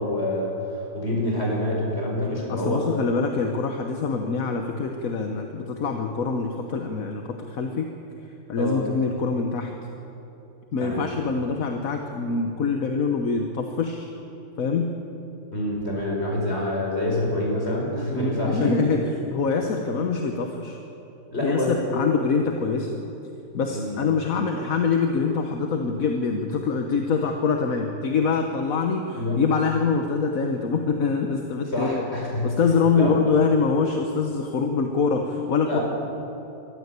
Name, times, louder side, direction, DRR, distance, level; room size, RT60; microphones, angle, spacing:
voice 1, 0.0-2.8 8.6-8.9 10.8-11.1 15.5-18.8 21.3-22.0 23.7-24.0 29.1-29.4 31.7-32.5 33.0-33.1 35.6-35.8, left 1 dB, 30° left, -2 dB, 5.4 m, -26 dB
voice 2, 2.5-7.9 8.5-9.7 10.7-14.1 14.6-15.0 18.1-19.0 19.3-20.8 21.4-23.0 23.5-32.0 32.4-35.8, left 5 dB, 50° left, 4 dB, 1.4 m, -24 dB
23.0 x 14.0 x 8.3 m, 3.0 s
omnidirectional pair, 2.1 m